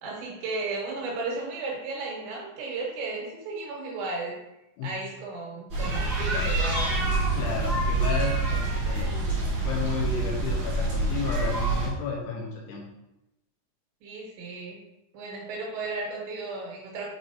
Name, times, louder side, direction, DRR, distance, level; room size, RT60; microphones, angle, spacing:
voice 1, 0.0-4.3 4.8-6.9 14.0-14.8 15.1-17.1, right 3 dB, 85° right, -3 dB, 3.9 m, -34 dB
sound 1, 5.7-11.9, right 2 dB, 40° right, 1.8 m, -26 dB
voice 2, 7.4-9.2 9.6-12.9, left 5 dB, 75° left, -2 dB, 2.9 m, -32 dB
7.5 x 4.6 x 2.7 m, 0.92 s
omnidirectional pair, 5.1 m